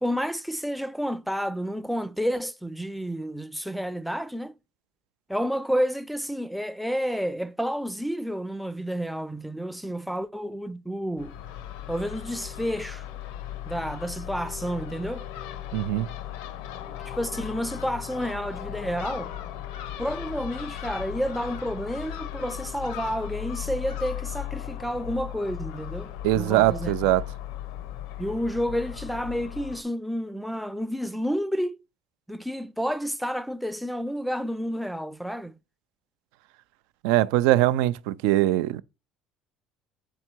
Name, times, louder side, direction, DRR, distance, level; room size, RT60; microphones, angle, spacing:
voice 1, 0.0-4.5 5.3-11.3 11.9-13.1 13.7-15.2 17.1-19.3 20.0-27.1 28.2-31.8 32.3-35.5, equal, ahead, 0.4 m, -30 dB
Crow / Gull seagull, 11.2-29.8, left 12 dB, 90° left, 0.8 m, -37 dB
voice 2, 15.7-16.1 26.2-27.2 37.0-38.8, right 15 dB, 85° right, 0.4 m, -22 dB
7.7 x 3.6 x 4.5 m
cardioid pair, 125°, 0 cm